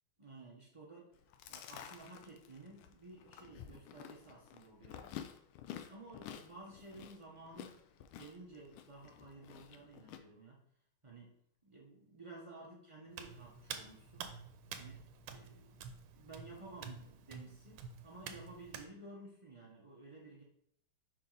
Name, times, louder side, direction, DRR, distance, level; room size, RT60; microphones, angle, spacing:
voice 1, 0.2-1.1 1.4-5.1 5.9-7.8 8.1-10.6 11.0-14.3 14.7-20.4, right 2 dB, 50° right, -4 dB, 0.3 m, -54 dB
Chewing mastication, 1.1-10.2, left 10 dB, 80° left, 1.4 m, -51 dB
Hands, 13.1-18.9, right 6 dB, 90° right, 1.5 m, -49 dB
5.3 x 4.6 x 3.9 m, 0.68 s
omnidirectional pair, 2.4 m